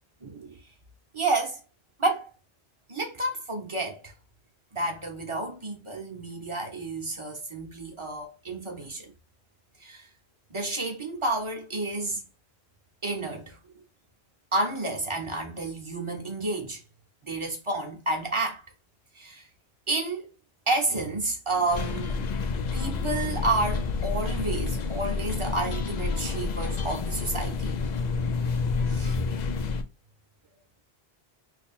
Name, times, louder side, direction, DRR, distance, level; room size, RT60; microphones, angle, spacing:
voice 1, 0.2-0.6 1.1-1.6 2.0-2.3 2.9-4.1 4.7-9.1 9.8-10.1 10.5-12.2 13.0-13.6 14.5-16.8 17.3-18.6 19.1-19.5 19.9-20.3 20.7-22.3 22.7-27.8 28.9-29.5, right 2 dB, 30° right, 0.9 m, -30 dB
sound 1, 21.7-29.8, left 4 dB, 55° left, 0.5 m, -29 dB
2.9 x 2.5 x 4.2 m
omnidirectional pair, 1.1 m